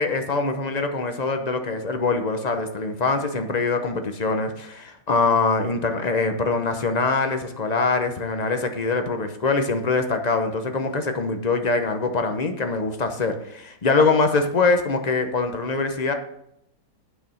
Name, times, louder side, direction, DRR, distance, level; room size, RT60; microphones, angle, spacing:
voice 1, 0.0-16.1, left 3 dB, 40° left, 6 dB, 0.6 m, -23 dB
9.2 x 5.7 x 6.2 m, 0.78 s
omnidirectional pair, 1.8 m